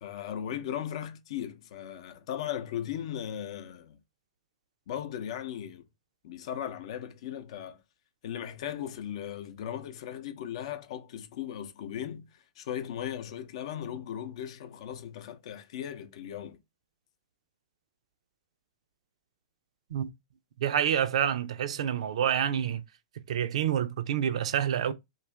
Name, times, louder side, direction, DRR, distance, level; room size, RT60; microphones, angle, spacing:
voice 1, 0.0-4.0 4.9-5.8 6.2-7.8 8.2-16.6, left 10 dB, 65° left, 0.6 m, -37 dB
voice 2, 20.6-22.8 23.3-24.9, right 9 dB, 70° right, 0.5 m, -28 dB
2.6 x 2.4 x 3.2 m
hypercardioid pair, 115°, 3 cm